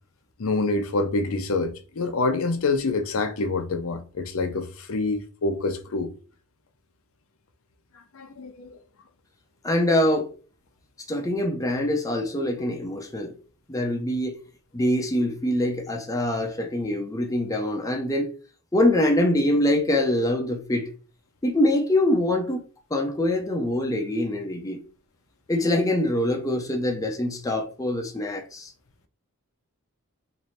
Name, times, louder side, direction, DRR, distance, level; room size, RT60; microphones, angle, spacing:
voice 1, 0.4-6.1 8.1-8.8, left 3 dB, 65° left, 0.5 m, -26 dB
voice 2, 9.6-10.3 11.1-13.3 13.7-14.4 14.7-18.3 18.7-20.9 21.4-22.6 22.9-24.8 25.5-28.7, left 1 dB, 15° left, 0.5 m, -24 dB
3.1 x 2.6 x 4.1 m
head